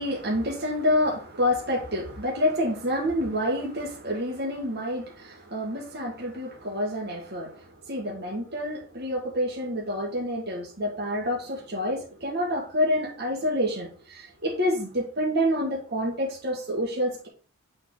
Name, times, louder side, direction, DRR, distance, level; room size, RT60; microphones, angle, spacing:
voice 1, 0.0-7.6 7.9-17.3, equal, 50° right, 1.6 m, -28 dB
6.4 x 3.9 x 3.7 m
head